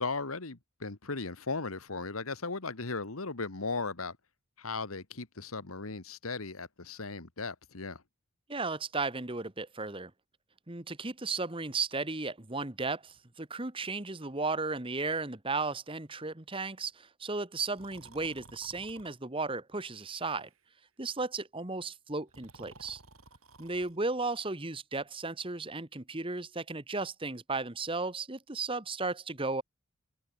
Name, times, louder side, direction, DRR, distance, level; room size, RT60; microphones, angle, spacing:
voice 1, 0.0-4.2 4.6-8.0, left 3 dB, 85° left, 1.8 m, -37 dB
voice 2, 8.5-10.1 10.7-20.5 21.0-23.0 23.6-29.6, right 3 dB, 25° right, 1.4 m, -35 dB
Breathing, 17.7-19.1 19.9-20.6 22.2-24.0, right 3 dB, 80° right, 5.0 m, -55 dB
head